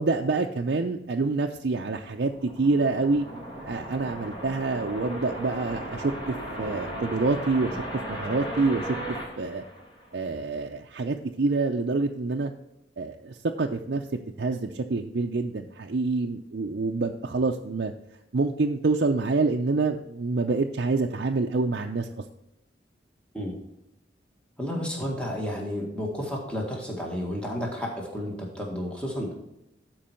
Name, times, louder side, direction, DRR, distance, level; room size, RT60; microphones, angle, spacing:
voice 1, 0.0-3.3 3.7-7.8 8.1-9.0 9.4-9.6 10.1-12.5 13.0-14.0 14.4-17.9 18.3-22.1, right 3 dB, 60° right, 1 dB, 0.5 m, -27 dB
sound 1, 2.1-10.4, right 1 dB, 25° left, 1.8 m, -36 dB
voice 2, 24.6-29.4, equal, 5° left, -2 dB, 1.8 m, -31 dB
12.5 x 4.6 x 4.4 m, 0.86 s
head